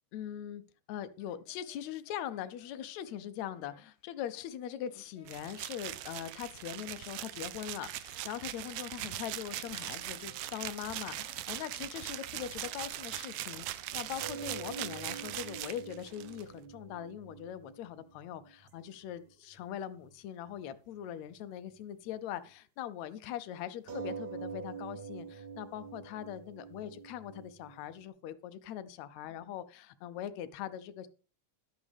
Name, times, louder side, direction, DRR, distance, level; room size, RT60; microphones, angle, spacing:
voice 1, 0.1-0.6 0.9-31.1, left 10 dB, 75° left, 12 dB, 1.9 m, -41 dB
Singing, 1.2-9.1 9.4-15.3, left 5 dB, 60° left, 2.1 m, -63 dB
sound 1, 5.3-16.4, right 14 dB, 90° right, 1.3 m, -41 dB
sound 2, 14.2-19.3 19.6-19.7 20.0-20.1 20.5-20.6 23.9-28.1, right 6 dB, 65° right, 1.0 m, -45 dB
12.0 x 8.5 x 3.4 m, 0.36 s
omnidirectional pair, 3.4 m